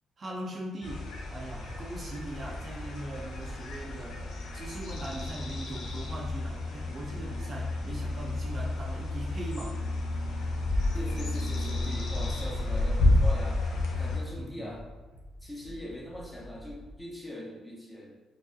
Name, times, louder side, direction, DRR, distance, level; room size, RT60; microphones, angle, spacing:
voice 1, 0.2-9.8 14.4-14.7, right 1 dB, 40° right, -2 dB, 0.6 m, -40 dB
sound 1, 0.8-14.2, left 2 dB, 80° left, 0.6 m, -31 dB
voice 2, 10.9-13.6 14.0-14.9 15.4-18.2, left 1 dB, 10° left, -4 dB, 0.9 m, -41 dB
sound 2, 13.2-17.0, equal, 85° right, 0.7 m, -49 dB
4.6 x 2.0 x 2.7 m, 1.2 s
cardioid pair, 90°, 0 cm